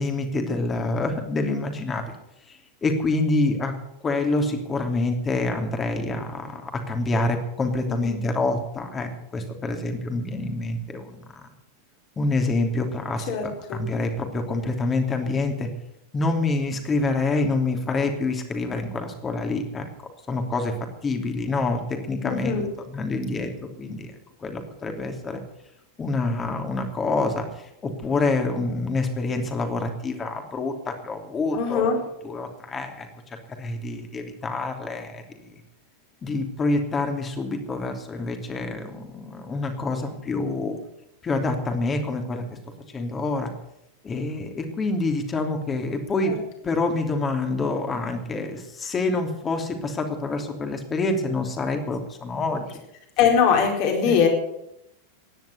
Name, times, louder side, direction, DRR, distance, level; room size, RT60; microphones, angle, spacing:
voice 1, 0.0-2.2 2.5-3.7 4.0-11.5 12.2-15.7 16.1-19.9 20.3-20.7 21.0-22.6 22.9-24.1 24.4-25.4 26.0-32.0 32.2-35.6 36.2-40.8 41.2-42.4 42.9-43.5 44.0-46.3 46.6-52.8 54.0-54.2, left 2 dB, 20° left, 5 dB, 3.1 m, -27 dB
voice 2, 7.9-8.2 13.3-13.9 22.2-22.7 31.5-32.0 46.3-46.4 53.2-54.3, left 6 dB, 45° left, 2 dB, 4.5 m, -22 dB
16.0 x 10.5 x 8.3 m, 0.81 s
figure-of-eight pair, 90°, 0 cm